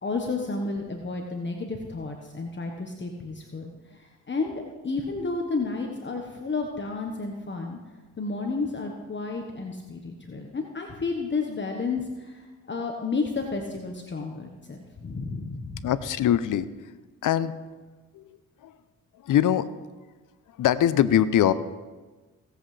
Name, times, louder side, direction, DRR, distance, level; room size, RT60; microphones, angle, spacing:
voice 1, 0.0-4.5 4.8-7.8 8.2-15.9, left 3 dB, 35° left, 2 dB, 1.3 m, -31 dB
voice 2, 15.8-16.7 17.2-17.5 18.1-18.3 18.6-18.7 19.2-19.7 20.6-21.5, left 10 dB, 65° left, 14 dB, 0.7 m, -22 dB
17.5 x 8.0 x 3.4 m, 1.3 s
supercardioid pair, 55°, 34 cm